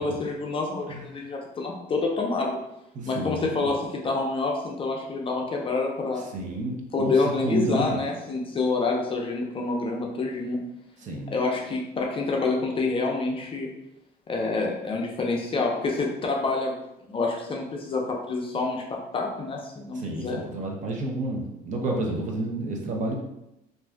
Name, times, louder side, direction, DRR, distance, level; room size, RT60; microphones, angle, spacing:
voice 1, 0.0-2.6 3.0-6.2 6.9-10.6 11.3-13.7 14.3-20.4, left 3 dB, 30° left, 0 dB, 0.5 m, -27 dB
voice 2, 2.9-3.5 6.3-7.1 7.4-8.0 11.0-11.4 19.9-23.1, right 1 dB, 45° right, 0 dB, 0.7 m, -30 dB
2.5 x 2.3 x 3.3 m, 0.86 s
cardioid pair, 110°, 17 cm